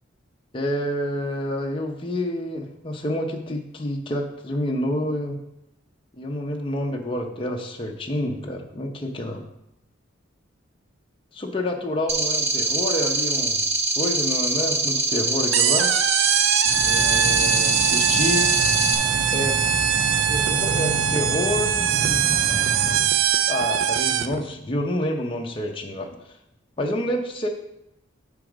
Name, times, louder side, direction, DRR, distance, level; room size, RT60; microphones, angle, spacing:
voice 1, 0.5-5.4 6.1-9.4 11.3-13.6 14.0-15.9 16.8-18.5 19.3-19.5 20.3-22.3 23.5-26.1 26.8-27.5, left 1 dB, 25° left, 1 dB, 0.7 m, -28 dB
sound 1, 12.1-18.9, right 3 dB, 35° right, 1.0 m, -24 dB
sound 2, 15.5-24.4, right 9 dB, 85° right, 0.4 m, -22 dB
sound 3, 16.6-23.0, right 1 dB, 60° right, 1.6 m, -30 dB
9.5 x 4.0 x 5.0 m, 0.83 s
head